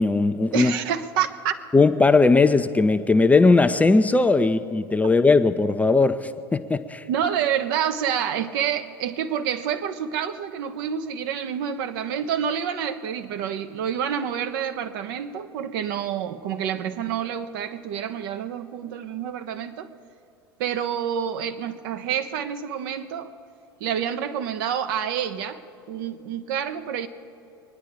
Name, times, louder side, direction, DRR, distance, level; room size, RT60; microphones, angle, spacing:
voice 1, 0.0-0.7 1.7-7.1, left 3 dB, 10° left, 0.6 m, -18 dB
voice 2, 0.5-1.5 7.1-19.9 20.6-23.3 23.8-27.1, right 8 dB, 60° right, 0.9 m, -28 dB
24.0 x 10.0 x 5.0 m
figure-of-eight pair, 80°, 13 cm